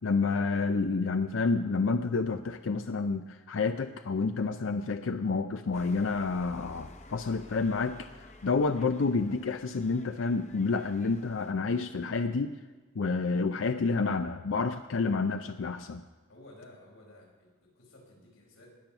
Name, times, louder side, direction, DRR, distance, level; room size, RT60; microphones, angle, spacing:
voice 1, 0.0-12.5 13.0-16.0, left 4 dB, 70° left, 8 dB, 0.5 m, -29 dB
sound 1, 5.7-11.5, left 1 dB, 35° left, 0.8 m, -52 dB
voice 2, 16.3-18.7, left 1 dB, 90° left, -2 dB, 5.0 m, -54 dB
19.5 x 7.0 x 5.9 m, 1.4 s
head